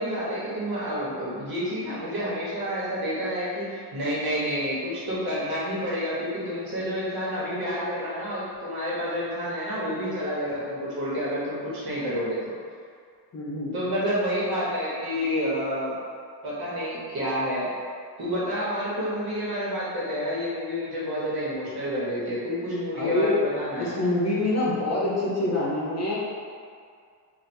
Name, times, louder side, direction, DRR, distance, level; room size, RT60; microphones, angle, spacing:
voice 1, 0.0-12.5 13.7-15.9 16.4-17.7 18.2-24.0, equal, 65° right, -8 dB, 1.4 m, -29 dB
voice 2, 13.3-13.7 22.9-23.3 23.8-26.2, left 2 dB, 40° left, -5 dB, 0.7 m, -26 dB
3.4 x 2.6 x 4.3 m, 2.2 s
wide cardioid pair, 180°, 40 cm